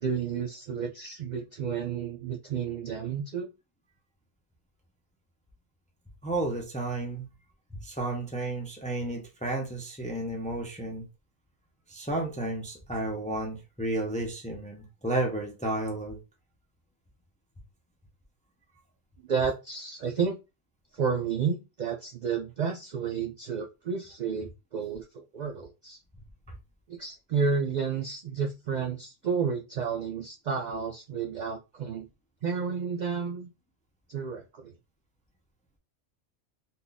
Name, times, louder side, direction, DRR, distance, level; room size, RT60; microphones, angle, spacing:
voice 1, 0.0-3.5 19.3-20.4 20.9-26.0 26.9-32.1 32.4-33.5 34.1-34.7, right 6 dB, 80° right, 0.4 m, -31 dB
voice 2, 6.2-7.3 7.7-11.1 11.9-16.2 26.5-26.6, right 2 dB, 10° left, 0.3 m, -32 dB
2.7 x 2.5 x 3.8 m
omnidirectional pair, 1.3 m